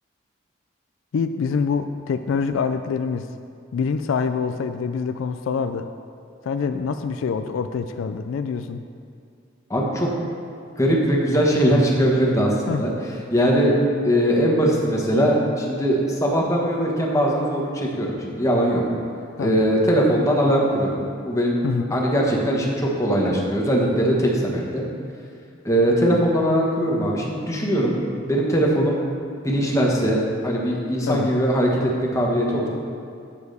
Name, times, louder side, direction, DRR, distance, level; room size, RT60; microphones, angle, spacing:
voice 1, 1.1-3.3 3.7-5.9 6.5-8.8 12.7-12.8 19.4-19.7 21.6-21.9 31.1-31.3, left 5 dB, 80° left, 9 dB, 0.3 m, -25 dB
voice 2, 9.7-10.1 10.8-12.9 13.3-13.7 14.0-18.8 19.4-21.6 21.9-24.8 25.6-27.9 28.3-29.0 29.4-32.7, equal, 15° left, -2 dB, 1.2 m, -20 dB
8.6 x 4.7 x 6.7 m, 2.4 s
head